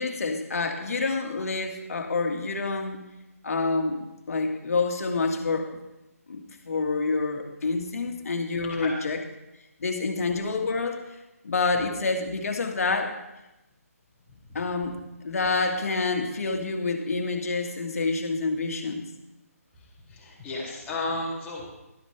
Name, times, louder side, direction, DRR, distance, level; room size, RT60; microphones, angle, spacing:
voice 1, 0.0-3.0 3.4-4.0 4.3-5.8 6.3-6.4 6.6-9.2 9.8-11.0 11.4-13.1 14.5-15.0 15.2-19.0, left 3 dB, 65° left, 3 dB, 1.7 m, -27 dB
voice 2, 8.6-9.1 14.3-14.6 19.7-21.6, left 2 dB, 10° left, -6 dB, 2.4 m, -34 dB
12.0 x 11.0 x 3.3 m, 0.96 s
hypercardioid pair, 165°, 8 cm